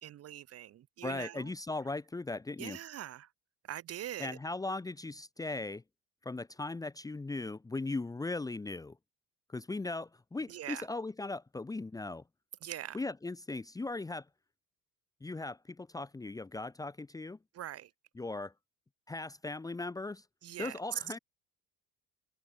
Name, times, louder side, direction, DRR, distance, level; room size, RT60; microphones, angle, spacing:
voice 1, 0.0-1.5 2.6-3.3 3.7-4.4 10.5-10.9 12.6-13.0 17.5-17.9 20.4-20.8, right 12 dB, 40° right, 2.8 m, -43 dB
voice 2, 1.0-2.8 4.2-5.8 6.2-9.0 9.5-12.2 12.9-14.3 15.2-17.4 18.1-18.5 19.1-20.2 20.6-21.2, left 3 dB, 10° left, 1.5 m, -38 dB
open air
cardioid pair, 175°, 37 cm